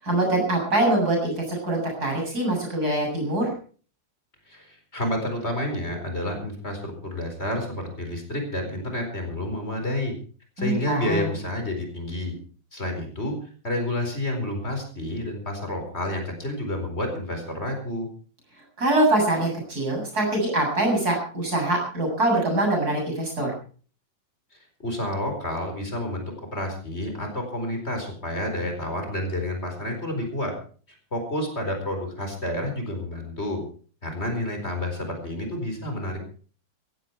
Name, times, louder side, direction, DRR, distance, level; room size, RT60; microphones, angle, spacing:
voice 1, 0.0-3.5 10.6-11.3 18.8-23.5, right 1 dB, 50° right, 0 dB, 8.2 m, -24 dB
voice 2, 4.5-10.1 10.6-12.3 12.7-13.4 13.6-18.1 24.5-26.2 26.5-30.5 30.9-33.6 34.0-36.3, left 1 dB, 35° left, 4 dB, 4.7 m, -29 dB
16.5 x 16.0 x 4.6 m, 0.41 s
omnidirectional pair, 2.0 m